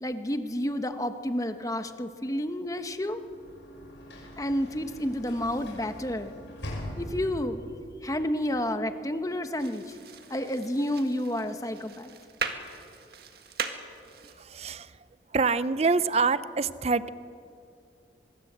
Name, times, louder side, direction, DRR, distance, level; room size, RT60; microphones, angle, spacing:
voice 1, 0.0-3.2 4.4-6.3 7.0-7.6 8.0-9.9 10.3-12.1, left 1 dB, 20° left, 8 dB, 1.1 m, -30 dB
Sliding door / Slam, 2.9-7.7, equal, 85° left, 6.3 m, -42 dB
sound 1, 9.6-14.7, right 5 dB, 60° right, 1.8 m, -39 dB
voice 2, 14.4-15.0 15.3-17.1, right 4 dB, 35° right, 15 dB, 0.5 m, -26 dB
24.0 x 22.5 x 8.0 m, 2.6 s
head